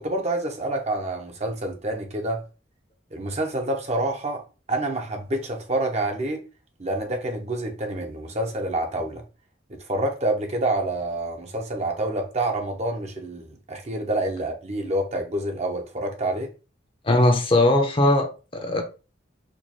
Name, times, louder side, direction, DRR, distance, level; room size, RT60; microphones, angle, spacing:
voice 1, 0.0-2.4 3.1-4.4 4.7-6.4 6.8-9.2 9.7-16.5, right 1 dB, 35° right, 0.7 m, -27 dB
voice 2, 17.0-18.8, left 1 dB, 30° left, 0.6 m, -20 dB
4.5 x 2.4 x 2.8 m
head